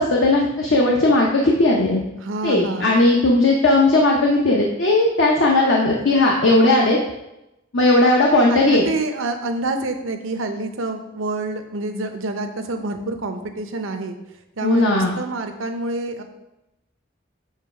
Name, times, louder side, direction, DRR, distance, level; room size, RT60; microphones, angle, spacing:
voice 1, 0.0-2.0 2.4-7.0 7.7-8.9 14.6-15.1, left 2 dB, 70° left, -2 dB, 0.7 m, -17 dB
voice 2, 2.1-2.9 8.5-14.2 14.6-16.2, right 2 dB, 85° right, 6 dB, 0.7 m, -27 dB
7.4 x 3.1 x 4.8 m, 0.92 s
head